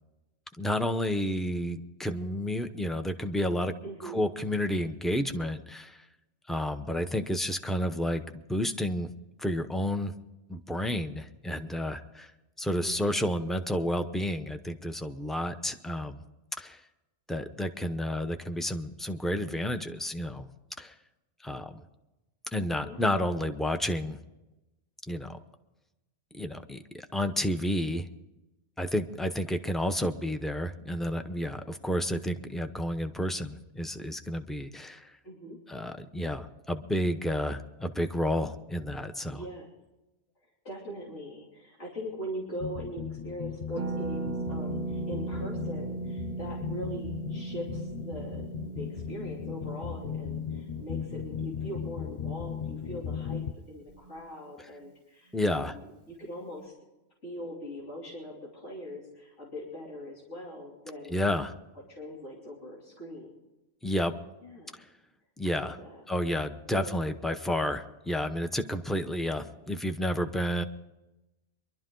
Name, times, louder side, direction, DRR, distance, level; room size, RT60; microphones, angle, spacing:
voice 1, 0.6-3.7 4.0-6.0 6.5-8.2 8.5-9.1 9.4-10.1 10.5-12.3 12.6-16.2 16.6-16.8 17.3-20.5 20.8-20.9 21.4-21.8 22.5-24.2 25.1-25.4 26.3-28.1 28.8-35.1 35.7-39.4 55.3-55.7 61.1-61.5 63.8-64.1 65.4-65.8 66.1-70.6, left 1 dB, ahead, 8 dB, 0.5 m, -31 dB
voice 2, 3.8-4.2 12.8-13.1 22.8-23.2 35.2-35.6 39.3-39.7 40.6-56.7 57.2-61.5 61.9-63.3 64.4-64.8 65.4-66.0 66.7-67.1, equal, 75° left, -5 dB, 3.4 m, -41 dB
sound 1, 42.6-53.5, left 8 dB, 45° left, 0.6 m, -37 dB
Harp, 43.7-53.4 53.6-53.7 53.9-54.2, right 3 dB, 40° right, 0.8 m, -38 dB
23.5 x 12.0 x 3.8 m, 1.0 s
omnidirectional pair, 1.2 m